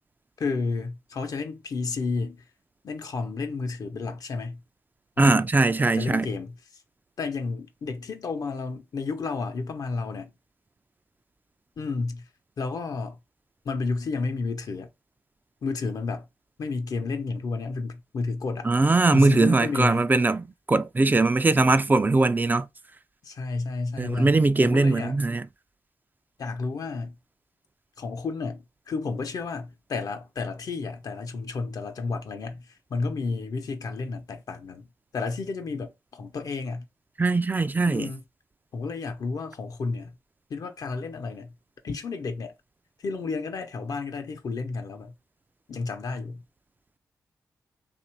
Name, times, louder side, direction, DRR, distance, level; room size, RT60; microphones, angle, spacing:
voice 1, 0.4-2.5 2.8-4.6 5.2-5.5 5.9-6.6 7.2-10.3 11.8-12.2 12.6-13.2 13.6-14.9 15.6-16.3 16.6-18.7 19.1-20.1 23.2-25.2 26.4-27.2 28.0-34.9 35.1-36.8 37.9-38.2 38.7-40.2 40.5-41.5 41.8-42.5 43.0-45.1 45.7-46.4, left 4 dB, 70° left, 0.8 m, -31 dB
voice 2, 5.2-6.3 18.7-22.6 24.0-25.5 37.2-38.1, right 3 dB, 30° right, 0.4 m, -21 dB
3.0 x 2.6 x 4.4 m
supercardioid pair, 45°, 7 cm